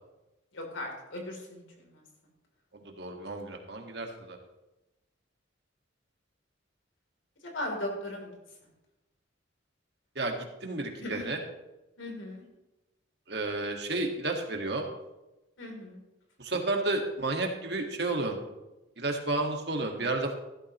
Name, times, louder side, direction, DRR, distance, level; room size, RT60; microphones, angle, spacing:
voice 1, 0.5-2.0 7.5-8.3 11.0-11.3 12.0-12.5 15.6-16.0, left 1 dB, 85° left, 1 dB, 3.4 m, -38 dB
voice 2, 2.7-4.4 10.2-11.4 13.3-14.9 16.4-18.4 19.0-20.3, right 2 dB, 60° right, 2 dB, 1.8 m, -31 dB
15.0 x 12.5 x 3.1 m, 0.99 s
head